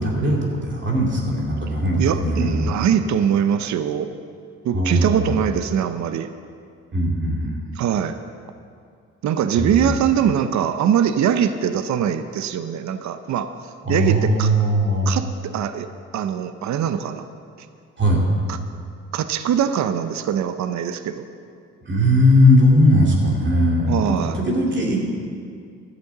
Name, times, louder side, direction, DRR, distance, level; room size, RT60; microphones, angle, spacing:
voice 1, 0.0-2.8 4.7-5.3 6.9-7.5 9.6-9.9 13.8-15.1 18.0-18.2 21.8-25.0, equal, 40° right, -2 dB, 2.5 m, -19 dB
voice 2, 2.0-4.1 4.6-6.3 7.8-8.2 9.2-13.5 13.9-14.5 15.1-15.9 16.1-17.3 18.5-18.6 19.1-21.2 23.9-24.4, right 8 dB, 65° right, 10 dB, 0.7 m, -22 dB
12.0 x 8.2 x 7.3 m, 2.3 s
cardioid pair, 90°, 30 cm